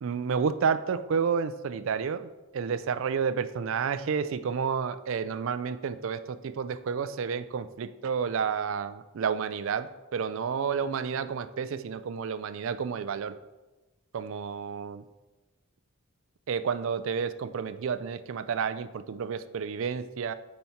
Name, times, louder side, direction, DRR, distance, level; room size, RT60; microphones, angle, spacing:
voice 1, 0.0-13.3 14.1-15.0 16.5-20.3, right 6 dB, 60° right, 13 dB, 0.3 m, -30 dB
9.1 x 4.3 x 4.4 m, 1.1 s
head